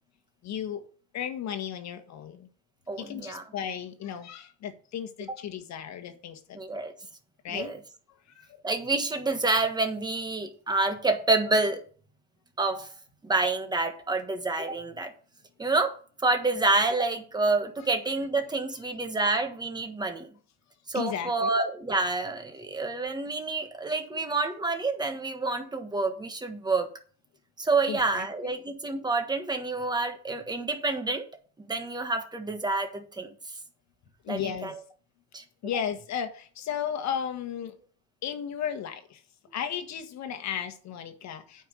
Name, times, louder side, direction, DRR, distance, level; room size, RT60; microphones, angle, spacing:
voice 1, 0.4-0.8 1.1-2.5 3.0-6.6 7.4-7.7 8.4-8.6 20.9-21.5 24.1-24.2 27.9-28.6 34.2-34.7 35.6-37.7 38.2-39.2 39.5-41.7, left 8 dB, 40° left, 8 dB, 1.6 m, -35 dB
voice 2, 2.9-3.4 5.3-5.4 6.5-6.9 7.5-7.8 8.6-11.8 12.6-12.9 13.2-15.1 15.6-15.9 16.2-20.3 20.9-26.9 27.6-31.2 31.7-33.3 34.3-34.8 35.3-35.4, right 3 dB, 10° right, 6 dB, 1.4 m, -28 dB
8.8 x 5.5 x 6.4 m, 0.43 s
supercardioid pair, 135°, 45 cm